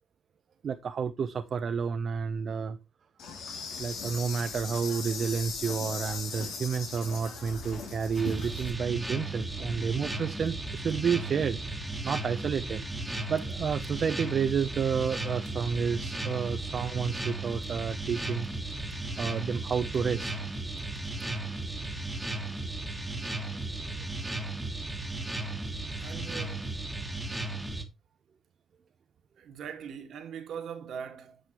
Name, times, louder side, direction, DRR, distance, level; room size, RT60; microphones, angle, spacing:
voice 1, 0.6-2.8 3.8-11.6 12.0-12.8 13.3-18.5 19.2-20.3, right 6 dB, 50° right, 0.6 m, -30 dB
Insect, 3.2-8.7, left 5 dB, 80° left, 2.5 m, -38 dB
sound 1, 8.1-27.8, right 2 dB, 5° right, 1.5 m, -35 dB
voice 2, 26.0-26.7 29.4-31.4, right 7 dB, 70° right, 1.7 m, -41 dB
8.2 x 6.3 x 2.9 m
cardioid pair, 90°, 0 cm